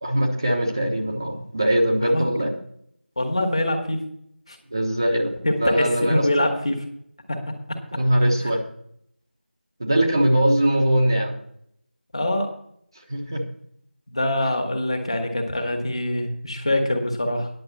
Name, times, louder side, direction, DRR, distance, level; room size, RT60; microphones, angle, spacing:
voice 1, 0.0-2.5 4.7-5.3 5.6-6.5 7.9-8.6 9.8-11.3 13.1-13.4, right 1 dB, 20° right, 0 dB, 1.2 m, -21 dB
voice 2, 3.2-4.0 4.5-4.6 5.4-6.8 7.3-7.4 7.7-7.8 8.4-8.5 12.1-12.5 14.1-17.5, left 1 dB, 30° left, 4 dB, 1.8 m, -24 dB
10.5 x 7.2 x 7.3 m, 0.68 s
figure-of-eight pair, 175°, 6 cm